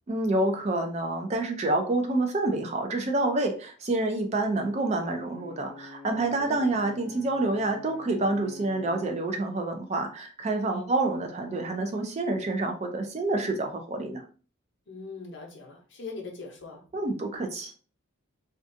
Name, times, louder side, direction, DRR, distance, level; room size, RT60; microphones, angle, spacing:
voice 1, 0.1-14.2 16.9-17.7, right 2 dB, 30° right, 4 dB, 0.3 m, -28 dB
Brass instrument, 5.0-9.2, left 3 dB, 50° right, 0.8 m, -47 dB
voice 2, 6.3-6.8 10.7-10.9 14.9-16.8, left 3 dB, 55° left, 0 dB, 0.7 m, -41 dB
2.4 x 2.2 x 2.6 m, 0.39 s
head